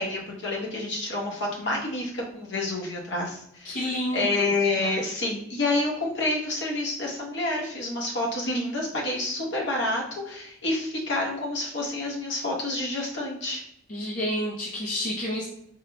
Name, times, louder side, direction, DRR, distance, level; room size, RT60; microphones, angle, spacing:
voice 1, 0.0-3.8 4.1-13.6, left 2 dB, 55° left, -3 dB, 1.1 m, -28 dB
voice 2, 3.6-5.0 13.9-15.5, equal, 40° left, -5 dB, 0.6 m, -30 dB
4.8 x 3.6 x 2.2 m, 0.77 s
head